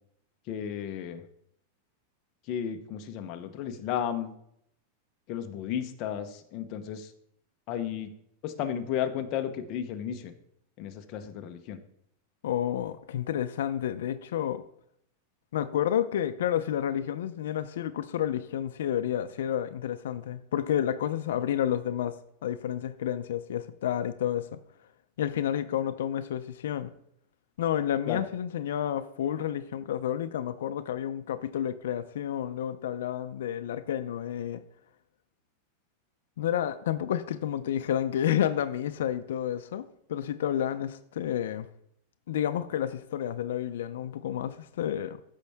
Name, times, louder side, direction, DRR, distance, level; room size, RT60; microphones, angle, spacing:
voice 1, 0.5-1.2 2.5-4.3 5.3-7.1 7.7-8.1 8.4-10.3 10.8-11.8 28.1-28.2, left 9 dB, 30° left, 6 dB, 0.7 m, -33 dB
voice 2, 12.4-14.6 15.5-22.2 22.4-24.6 25.2-26.9 27.6-34.6 36.4-41.7 42.3-45.2, left 10 dB, 80° left, 11 dB, 0.5 m, -30 dB
14.0 x 5.4 x 3.5 m, 0.72 s
supercardioid pair, 180°, 0 cm